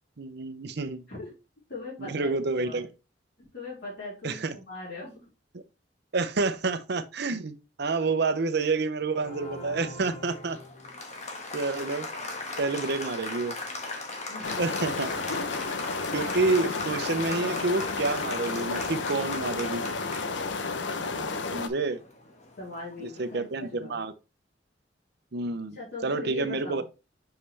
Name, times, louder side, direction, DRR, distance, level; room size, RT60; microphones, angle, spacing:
voice 1, 0.2-1.0 2.0-2.9 4.2-4.5 6.1-10.6 11.5-12.1 12.6-13.6 14.6-15.1 16.1-19.8 21.5-22.0 23.0-24.1 25.3-26.8, right 3 dB, 65° right, 0.7 m, -29 dB
voice 2, 1.7-2.8 3.5-5.2 14.3-14.7 15.3-15.8 20.8-21.5 22.6-24.0 25.7-26.8, left 3 dB, 60° left, 3.4 m, -40 dB
Applause, 9.1-23.5, left 2 dB, 40° left, 1.4 m, -39 dB
sound 1, 14.4-21.7, left 4 dB, 80° left, 0.8 m, -32 dB
5.7 x 5.4 x 3.3 m
head